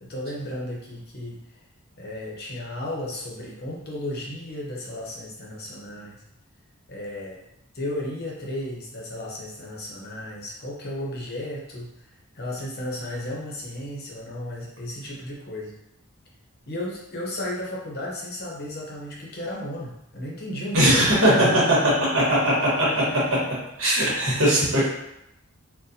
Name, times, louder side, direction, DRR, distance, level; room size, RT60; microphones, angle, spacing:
voice 1, 0.0-1.6 2.0-6.2 6.9-7.4 7.7-15.7 16.7-21.6 22.8-23.5 24.7-24.9, left 1 dB, 45° left, -3 dB, 0.7 m, -34 dB
voice 2, 20.7-21.5 22.0-22.9 23.8-24.9, right 1 dB, 65° right, -6 dB, 1.2 m, -20 dB
4.0 x 2.1 x 2.7 m, 0.82 s
head